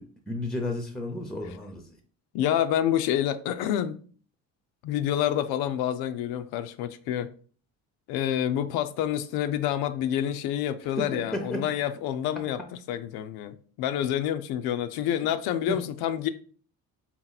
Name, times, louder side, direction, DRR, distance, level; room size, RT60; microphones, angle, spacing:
voice 1, 0.0-1.8 11.0-11.6 15.7-15.8, left 1 dB, ahead, 0.6 m, -32 dB
voice 2, 2.3-4.0 4.8-7.3 8.1-12.6 12.9-16.3, left 11 dB, 85° left, 0.5 m, -28 dB
4.0 x 3.0 x 3.9 m
cardioid pair, 115°, 36 cm